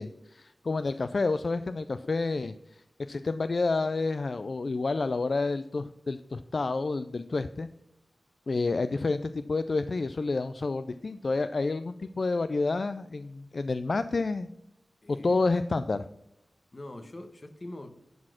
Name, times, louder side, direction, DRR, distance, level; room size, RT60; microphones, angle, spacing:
voice 1, 0.0-7.7 8.5-14.5 15.1-16.1, left 3 dB, 55° left, 12 dB, 0.3 m, -29 dB
voice 2, 15.0-15.5 16.7-18.0, left 1 dB, 35° left, 8 dB, 1.1 m, -44 dB
11.5 x 4.2 x 6.3 m, 0.86 s
wide cardioid pair, 105°, 0 cm